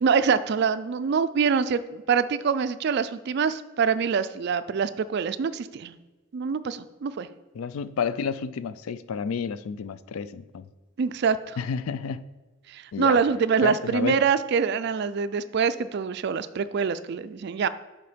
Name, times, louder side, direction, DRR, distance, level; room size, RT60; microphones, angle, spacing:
voice 1, 0.0-6.0 6.3-7.3 11.0-11.6 12.7-17.7, right 6 dB, 50° right, 14 dB, 0.3 m, -25 dB
voice 2, 7.6-10.7 11.6-12.2 12.9-13.2 13.6-14.2, left 6 dB, 80° left, 15 dB, 0.4 m, -30 dB
6.8 x 4.4 x 5.0 m, 1.2 s
head